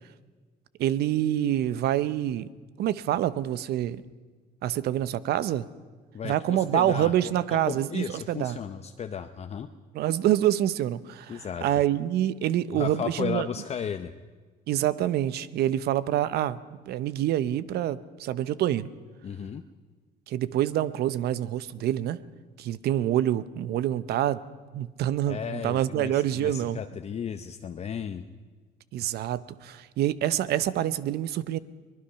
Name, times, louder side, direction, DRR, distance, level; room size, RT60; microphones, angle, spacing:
voice 1, 0.8-2.5 2.8-4.0 4.6-5.7 6.2-8.6 9.9-13.5 14.7-18.9 20.3-22.2 22.6-24.4 24.7-26.8 28.9-31.6, right 12 dB, 70° right, 16 dB, 0.8 m, -26 dB
voice 2, 6.1-9.7 11.3-11.7 12.7-14.1 19.2-19.6 25.3-28.3, left 7 dB, 40° left, 8 dB, 0.8 m, -34 dB
23.5 x 20.0 x 5.7 m, 1.4 s
cardioid pair, 110°, 17 cm